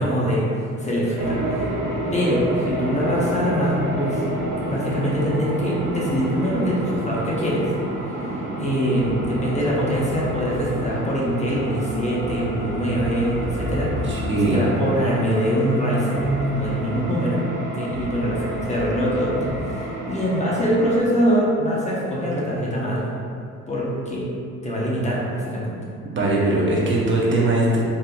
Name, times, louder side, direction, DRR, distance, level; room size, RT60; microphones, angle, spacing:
voice 1, 0.0-1.7 2.1-4.2 4.7-7.7 8.6-17.4 17.7-23.1 23.7-24.3 24.6-25.8, equal, 25° left, -6 dB, 0.7 m, -23 dB
sound 1, 1.2-21.0, right 1 dB, 90° right, 1.0 m, -29 dB
sound 2, 8.9-14.6 16.2-17.0 17.9-19.6, equal, 10° right, 0.9 m, -36 dB
voice 2, 14.0-14.6 26.0-27.8, right 2 dB, 40° right, -4 dB, 0.7 m, -20 dB
4.2 x 2.5 x 2.2 m, 2.4 s
cardioid pair, 90°, 30 cm